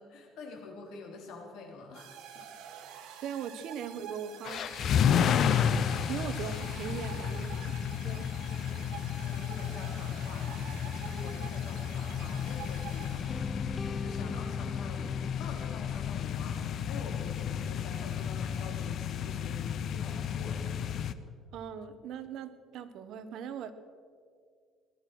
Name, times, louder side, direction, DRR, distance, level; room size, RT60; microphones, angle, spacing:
voice 1, 0.0-2.5 6.2-6.3 8.5-20.9 21.3-21.4, left 3 dB, 70° left, 2 dB, 3.5 m, -47 dB
sound 1, 1.9-13.8, right 9 dB, 80° right, 1.7 m, -48 dB
voice 2, 3.2-5.7 6.1-8.3 21.5-23.7, right 8 dB, 65° right, 11 dB, 1.1 m, -40 dB
sound 2, 4.4-21.1, left 8 dB, 50° left, 0.7 m, -32 dB
sound 3, 13.3-17.4, left 2 dB, 15° left, 0.5 m, -42 dB
19.0 x 12.0 x 6.2 m, 2.1 s
cardioid pair, 140°, 0 cm